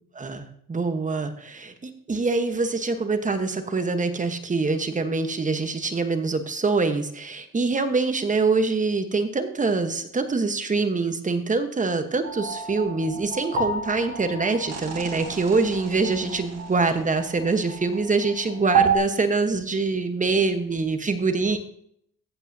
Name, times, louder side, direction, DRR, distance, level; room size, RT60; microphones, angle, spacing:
voice 1, 0.1-21.7, right 3 dB, 25° right, 8 dB, 1.2 m, -25 dB
sound 1, 12.2-19.0, right 6 dB, 55° right, 1.7 m, -29 dB
15.0 x 8.2 x 2.8 m, 0.69 s
cardioid pair, 90°, 30 cm